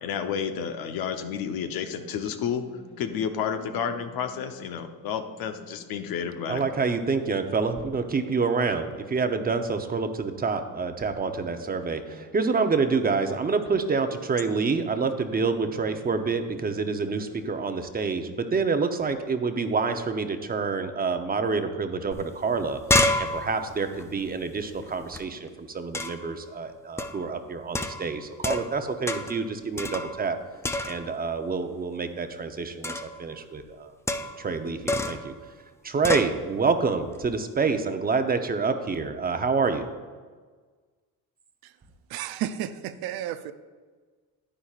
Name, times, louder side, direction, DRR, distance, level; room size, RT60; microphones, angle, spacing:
voice 1, 0.0-2.6 3.0-6.6, left 7 dB, 70° left, 7 dB, 0.9 m, -31 dB
sound 1, 0.7-17.9, left 3 dB, 30° left, 2.6 m, -51 dB
voice 2, 6.5-22.8 23.2-30.4 30.8-33.9 34.4-35.3 35.8-39.9, right 4 dB, 25° right, 7 dB, 0.7 m, -27 dB
sound 2, 22.1-22.2 22.5-25.2 25.9-26.3 27.0-27.3 27.7-28.8 29.1-29.4 29.8-30.4 30.6-31.2 32.8-33.2 34.1-34.5 34.9-35.3 36.0-36.3, left 2 dB, 10° left, 0.4 m, -28 dB
voice 3, 42.1-43.5, right 11 dB, 75° right, 12 dB, 0.6 m, -32 dB
10.0 x 9.9 x 2.4 m, 1.5 s
cardioid pair, 105°, 37 cm